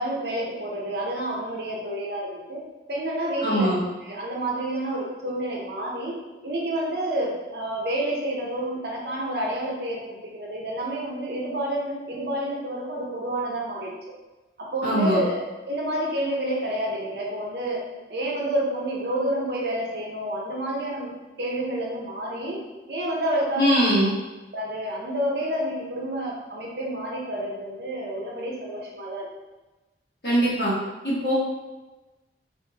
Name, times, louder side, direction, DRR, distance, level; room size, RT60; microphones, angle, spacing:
voice 1, 0.0-2.6 2.9-3.7 4.0-13.9 14.6-17.8 18.1-21.1 21.4-23.9 24.5-29.3, right 1 dB, 65° right, -2 dB, 0.7 m, -29 dB
voice 2, 3.4-3.8 14.8-15.2 23.6-24.1 30.2-30.7 31.0-31.3, equal, 60° left, -8 dB, 1.3 m, -21 dB
3.3 x 2.6 x 2.8 m, 1.1 s
head